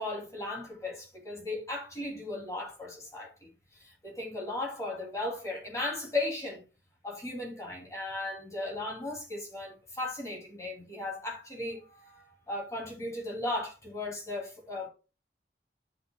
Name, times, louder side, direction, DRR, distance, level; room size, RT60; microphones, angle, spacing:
voice 1, 0.0-3.5 3.7-6.6 7.0-14.9, left 2 dB, 20° left, 2.7 m, -36 dB
13.0 x 5.9 x 2.3 m
head